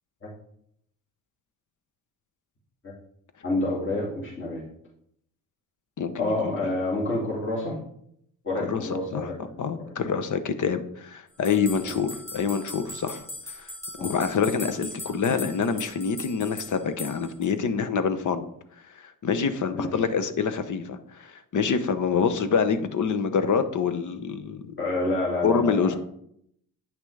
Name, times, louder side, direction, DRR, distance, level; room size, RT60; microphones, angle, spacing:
voice 1, 3.4-4.7 6.2-7.8 8.4-9.3 11.8-11.9 14.0-14.1 19.7-20.0 24.8-26.0, left 2 dB, 35° left, -5 dB, 2.5 m, -28 dB
voice 2, 6.0-6.6 8.6-9.3 9.6-13.2 13.5-13.7 14.0-18.5 19.0-24.8 25.4-26.0, left 6 dB, 55° left, 10 dB, 0.9 m, -26 dB
sound 1, 11.4-17.5, left 2 dB, 5° left, 1.9 m, -39 dB
8.9 x 5.9 x 3.3 m, 0.71 s
cardioid pair, 80°, 37 cm